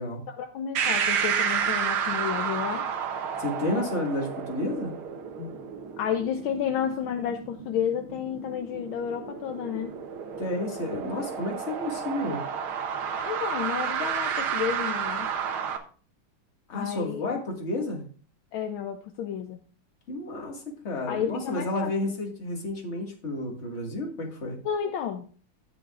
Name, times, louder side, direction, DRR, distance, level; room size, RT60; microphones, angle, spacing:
voice 1, 0.3-2.9 5.4-5.5 6.0-10.0 13.2-15.3 16.7-17.4 18.5-19.6 21.1-21.9 24.6-25.2, left 8 dB, 75° left, 6 dB, 1.5 m, -31 dB
sound 1, 0.7-15.8, right 7 dB, 75° right, 1.8 m, -31 dB
voice 2, 3.4-4.9 10.4-12.4 16.7-18.1 20.1-24.6, left 1 dB, 30° left, 0 dB, 2.2 m, -31 dB
17.0 x 6.2 x 2.5 m, 0.40 s
omnidirectional pair, 2.4 m